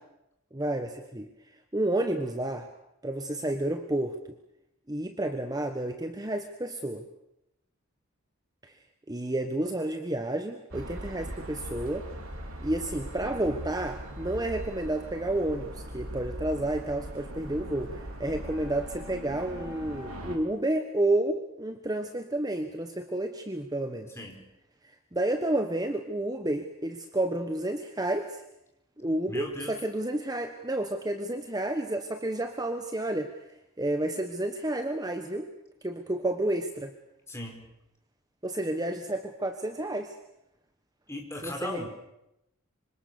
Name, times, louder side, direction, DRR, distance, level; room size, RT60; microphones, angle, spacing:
voice 1, 0.5-1.3 1.7-2.7 3.0-4.1 4.9-7.0 8.6-8.7 9.1-12.1 12.6-24.1 25.1-28.4 29.0-33.3 33.8-35.5 35.8-36.9 38.4-40.2 41.4-41.8, right 1 dB, 20° right, 6 dB, 1.2 m, -30 dB
sound 1, 10.7-20.4, equal, 80° right, 4.2 m, -40 dB
voice 2, 24.1-24.4 29.3-29.8 37.3-37.7 41.1-41.9, left 1 dB, 10° left, 2 dB, 4.7 m, -38 dB
25.5 x 25.5 x 7.0 m, 0.86 s
head